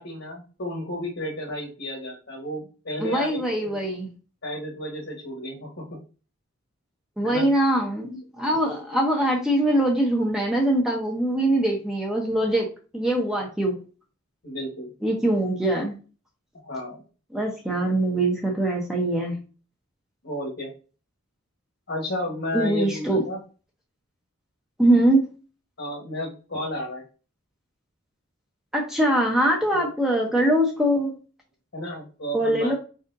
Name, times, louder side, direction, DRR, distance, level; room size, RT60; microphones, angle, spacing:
voice 1, 0.0-3.8 4.4-6.0 7.2-7.5 14.4-14.9 16.5-17.0 17.7-17.9 20.2-20.7 21.9-23.4 25.8-27.0 29.7-29.9 31.7-32.8, left 1 dB, 60° left, -1 dB, 1.3 m, -32 dB
voice 2, 3.0-4.1 7.2-12.7 12.9-13.7 15.0-15.9 17.3-19.4 22.5-23.2 24.8-25.2 28.7-31.1 32.3-32.7, right 1 dB, 5° right, -1 dB, 0.8 m, -22 dB
4.9 x 4.0 x 2.6 m, 0.35 s
head